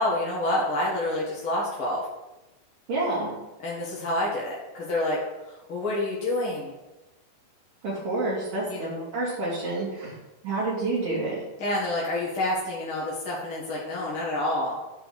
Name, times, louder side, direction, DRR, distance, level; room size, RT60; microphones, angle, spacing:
voice 1, 0.0-2.1 3.6-5.2 5.4-6.7 8.7-9.0 11.6-14.8, left 1 dB, 50° left, -5 dB, 1.7 m, -28 dB
voice 2, 2.9-3.3 7.8-10.1 10.4-11.3, right 2 dB, 50° right, -11 dB, 4.3 m, -28 dB
11.5 x 5.2 x 6.4 m, 1.0 s
omnidirectional pair, 5.2 m